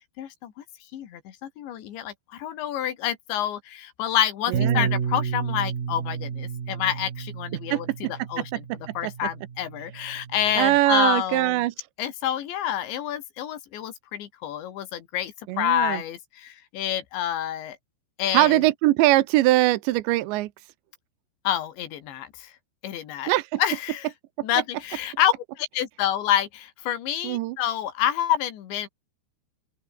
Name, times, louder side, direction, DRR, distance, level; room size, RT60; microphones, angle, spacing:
voice 1, 0.2-0.5 0.9-8.7 9.0-11.7 12.0-17.8 18.2-18.6 21.4-22.5 22.8-23.3 23.6-24.1 24.4-28.9, left 11 dB, 80° left, 4.5 m, -28 dB
Bass guitar, 4.5-10.8, right 7 dB, 50° right, 5.0 m, -31 dB
voice 2, 4.5-4.9 7.7-7.8 8.4-8.6 9.0-9.1 10.6-11.7 15.5-16.0 18.3-20.5 23.3-23.6 27.2-27.6, right 17 dB, 80° right, 3.2 m, -21 dB
open air
omnidirectional pair, 5.2 m